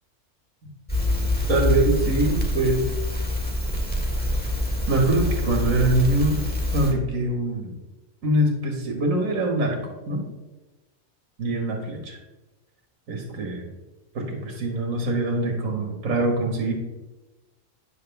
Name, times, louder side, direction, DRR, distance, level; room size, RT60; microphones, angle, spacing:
Crackle, 0.9-6.9, left 1 dB, 5° left, 1.7 m, -25 dB
voice 1, 1.5-2.8 4.9-6.4 6.7-7.7 8.2-9.8 10.1-10.2 11.4-12.2 13.1-13.6 14.1-16.7, right 2 dB, 80° right, 1 dB, 1.9 m, -23 dB
9.5 x 7.2 x 3.5 m, 1.1 s
omnidirectional pair, 1.4 m